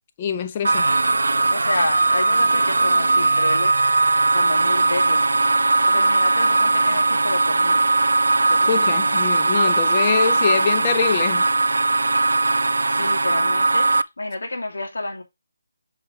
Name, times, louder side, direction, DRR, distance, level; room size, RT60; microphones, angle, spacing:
voice 1, 0.2-0.9 8.7-11.5, left 7 dB, 30° left, 1.0 m, -24 dB
sound 1, 0.6-14.0, right 3 dB, 75° right, 0.5 m, -19 dB
voice 2, 1.5-3.7 4.3-5.3 5.6-7.8 8.5-9.2 11.7-11.8 12.9-15.2, left 2 dB, 75° left, 2.9 m, -30 dB
6.8 x 6.0 x 3.4 m
figure-of-eight pair, 155°, 0 cm